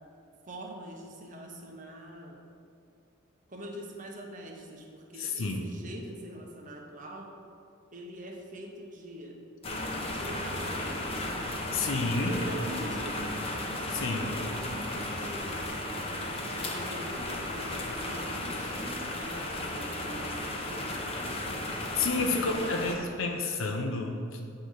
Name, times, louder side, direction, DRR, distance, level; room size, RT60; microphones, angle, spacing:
voice 1, 0.5-2.4 3.5-7.3 7.9-9.4 10.2-11.4 12.2-13.5 13.9-15.8 16.5-21.6 22.3-22.6, right 1 dB, 40° right, 1 dB, 1.0 m, -44 dB
voice 2, 5.2-5.6 11.7-12.4 13.9-14.3 21.9-24.4, left 3 dB, 80° left, 2 dB, 0.7 m, -30 dB
sound 1, 9.6-22.9, left 1 dB, 30° left, 0.9 m, -35 dB
8.5 x 3.8 x 6.3 m, 2.6 s
head